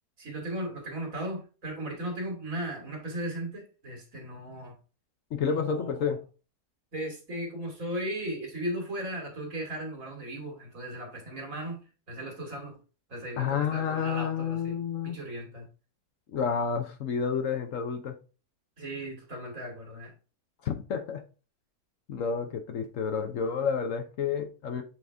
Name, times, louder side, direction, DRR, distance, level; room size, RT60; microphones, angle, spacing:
voice 1, 0.2-4.8 5.5-6.2 6.9-12.8 13.1-14.8 15.0-15.7 18.8-20.1, right 1 dB, 60° right, 2.6 m, -37 dB
voice 2, 5.3-6.2 13.4-15.2 16.3-18.2 20.6-21.2 22.1-24.8, left 6 dB, 60° left, 1.1 m, -30 dB
7.7 x 3.9 x 3.4 m
omnidirectional pair, 1.6 m